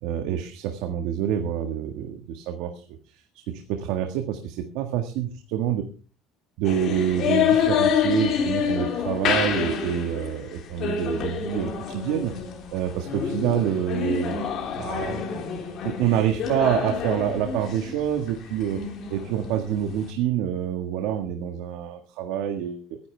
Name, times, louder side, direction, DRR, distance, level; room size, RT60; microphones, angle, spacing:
voice 1, 0.0-2.8 3.1-5.8 6.6-12.3 12.7-14.4 14.8-15.4 15.8-18.8 19.1-23.0, right 10 dB, 75° right, 5 dB, 1.7 m, -27 dB
sound 1, 6.6-20.1, left 7 dB, 40° left, 3.4 m, -28 dB
23.5 x 10.5 x 3.4 m, 0.36 s
cardioid pair, 170°, 0 cm